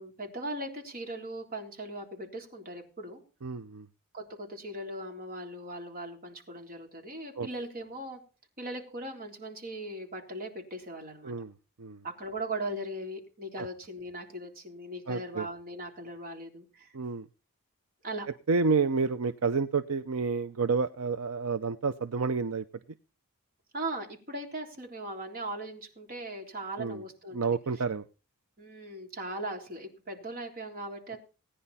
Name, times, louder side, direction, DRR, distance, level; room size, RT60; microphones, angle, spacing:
voice 1, 0.0-3.2 4.1-8.2 8.6-11.3 12.0-17.0 18.0-18.3 23.7-27.4 28.6-31.2, right 1 dB, 40° right, 2 dB, 3.7 m, -39 dB
voice 2, 3.4-3.9 7.4-7.5 11.2-11.5 11.8-12.0 13.6-13.7 15.1-15.5 16.9-17.3 18.5-22.6 26.8-27.0 27.3-28.0, right 4 dB, 70° right, 11 dB, 0.7 m, -29 dB
18.0 x 10.0 x 4.2 m, 0.34 s
head